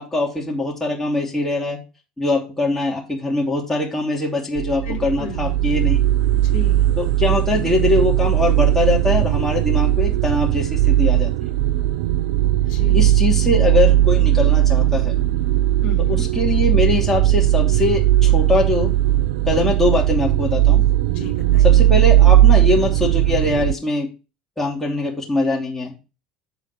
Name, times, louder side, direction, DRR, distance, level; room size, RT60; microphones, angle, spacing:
voice 1, 0.0-1.8 2.2-6.0 7.0-11.5 12.9-15.1 16.1-18.9 19.5-20.8 21.6-24.1 24.6-25.9, left 2 dB, 10° left, -3 dB, 2.4 m, -22 dB
sound 1, 4.6-23.7, right 13 dB, 65° right, 0.3 m, -17 dB
voice 2, 4.8-5.5 6.4-6.9 12.7-13.1 15.8-16.3 21.1-21.7, left 5 dB, 60° left, 6 dB, 1.7 m, -34 dB
7.0 x 4.1 x 5.9 m, 0.30 s
hypercardioid pair, 70°, 4 cm